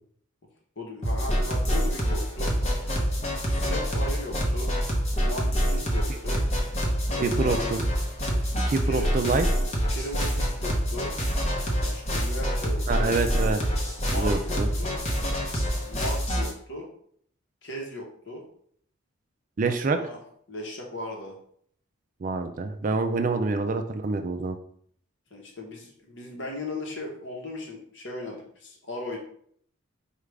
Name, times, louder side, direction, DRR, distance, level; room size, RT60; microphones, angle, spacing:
voice 1, 0.8-2.5 3.5-4.8 5.2-6.4 7.1-7.7 8.8-9.1 9.9-11.1 11.8-13.2 14.0-15.0 15.8-16.9 17.6-18.4 19.6-20.2 20.5-21.4 25.3-29.2, left 1 dB, 55° left, 0 dB, 1.0 m, -37 dB
sound 1, 1.0-16.5, equal, 30° left, 0.8 m, -26 dB
voice 2, 7.2-7.8 8.3-8.4 8.7-9.5 12.9-13.6 14.1-14.7 19.6-20.0 22.2-24.6, right 3 dB, 40° right, 7 dB, 0.3 m, -26 dB
4.9 x 2.4 x 3.3 m, 0.64 s
head